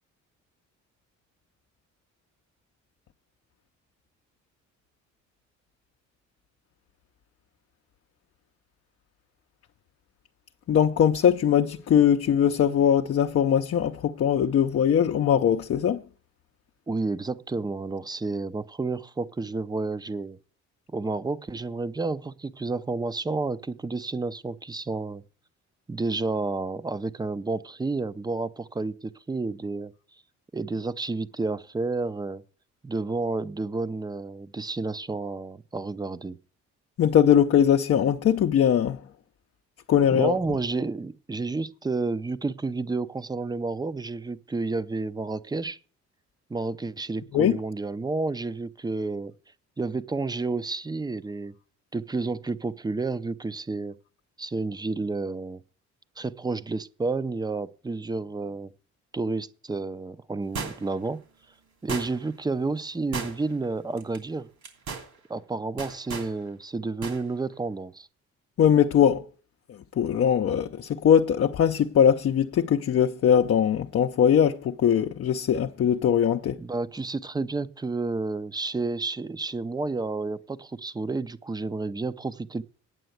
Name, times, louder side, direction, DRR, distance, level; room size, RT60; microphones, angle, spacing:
voice 1, 10.7-16.0 37.0-39.0 39.9-40.3 47.3-47.6 68.6-69.2 69.7-76.6, left 8 dB, 50° left, 0.6 m, -21 dB
voice 2, 16.9-20.4 20.9-25.2 25.9-29.9 30.5-32.4 32.8-36.4 40.1-45.8 46.5-49.3 49.8-51.5 51.9-54.0 54.4-55.6 56.2-58.7 59.1-61.2 61.8-64.5 65.3-68.1 76.6-82.6, right 3 dB, 15° right, 0.5 m, -30 dB
sound 1, 60.6-61.1 61.9-62.4 63.1-63.6 64.0-64.2 64.6-65.1 65.8-66.3 67.0-67.2 67.5-67.6, right 5 dB, 70° right, 3.0 m, -35 dB
9.2 x 6.9 x 7.8 m
cardioid pair, 90°, 30 cm